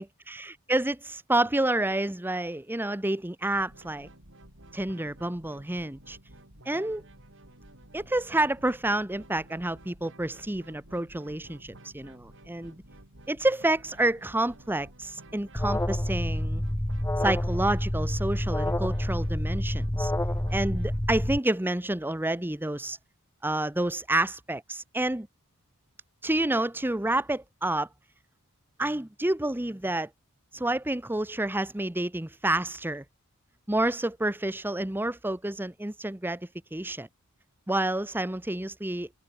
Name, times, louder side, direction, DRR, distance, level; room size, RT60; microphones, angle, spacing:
voice 1, 0.0-4.1 4.7-6.2 6.7-7.0 7.9-12.8 13.3-16.6 17.2-20.1 20.5-23.0 23.4-25.3 26.2-27.9 28.8-30.1 30.5-33.0 33.7-37.1 37.7-39.2, right 1 dB, 10° right, 0.9 m, -29 dB
sound 1, 3.5-21.0, right 1 dB, 60° right, 6.6 m, -52 dB
Alarm, 15.5-21.4, left 1 dB, 10° left, 1.1 m, -28 dB
head